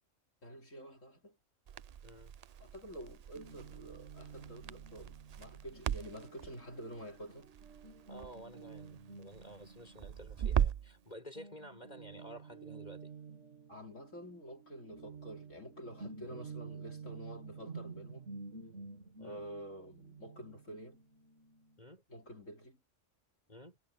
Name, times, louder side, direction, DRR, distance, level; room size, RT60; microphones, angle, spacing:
voice 1, 0.4-1.4 2.6-7.5 13.7-18.3 19.2-21.0 22.1-22.8, equal, 75° left, 5.1 m, -49 dB
Crackle, 1.7-11.0, right 9 dB, 85° right, 0.3 m, -39 dB
voice 2, 2.0-2.3 8.1-13.1 19.2-19.4 21.8-22.0 23.5-23.8, equal, 35° left, 5.7 m, -52 dB
Guitar, 3.3-11.0 11.3-21.8, right 4 dB, 65° right, 2.5 m, -51 dB
omnidirectional pair, 1.3 m